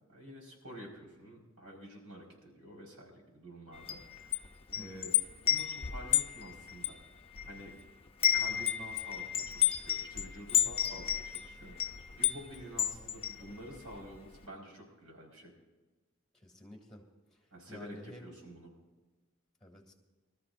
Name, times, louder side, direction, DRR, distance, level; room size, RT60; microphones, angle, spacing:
voice 1, 0.1-4.4 4.7-5.1 5.4-7.0 7.5-7.7 8.2-15.5 17.5-18.7, equal, 75° right, -1 dB, 5.1 m, -49 dB
Wind chime, 3.7-7.8 8.1-14.0, left 10 dB, 25° left, 0.7 m, -32 dB
voice 2, 16.3-17.1 17.3-18.4 19.6-19.9, left 1 dB, 5° left, -1 dB, 2.9 m, -51 dB
24.5 x 13.5 x 2.7 m, 1.2 s
head